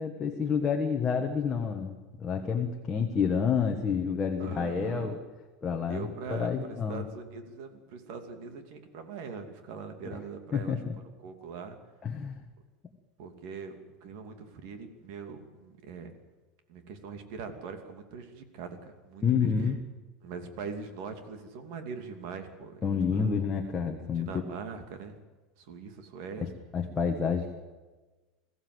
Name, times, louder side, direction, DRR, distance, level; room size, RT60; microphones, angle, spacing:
voice 1, 0.0-5.2 5.6-7.0 10.5-10.9 12.0-12.4 19.2-19.8 22.8-24.3 26.4-27.6, left 6 dB, 15° left, 2 dB, 1.4 m, -29 dB
voice 2, 4.4-5.2 5.9-10.8 11.2-11.8 13.2-16.1 16.7-19.5 20.2-23.3 24.1-25.2 25.6-26.5, right 5 dB, 55° right, 6 dB, 2.7 m, -42 dB
21.5 x 15.5 x 8.0 m, 1.2 s
supercardioid pair, 170°, 0 cm